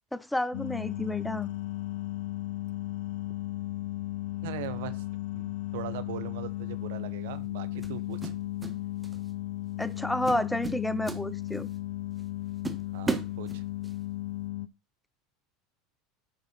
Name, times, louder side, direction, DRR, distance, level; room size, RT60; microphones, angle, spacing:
voice 1, 0.1-1.5 9.8-11.7, left 1 dB, 5° left, 0.6 m, -30 dB
sound 1, 0.5-14.7, left 17 dB, 70° left, 0.4 m, -35 dB
voice 2, 4.4-5.0 5.3-8.3 12.9-13.6, right 12 dB, 75° right, 0.9 m, -40 dB
sound 2, 6.5-6.7 7.8-8.8 9.0-9.3 9.8-10.0 10.3-11.8 12.2-12.3 12.6-14.0, right 3 dB, 15° right, 1.3 m, -35 dB
9.7 x 4.1 x 6.2 m
hypercardioid pair, 90°, 0 cm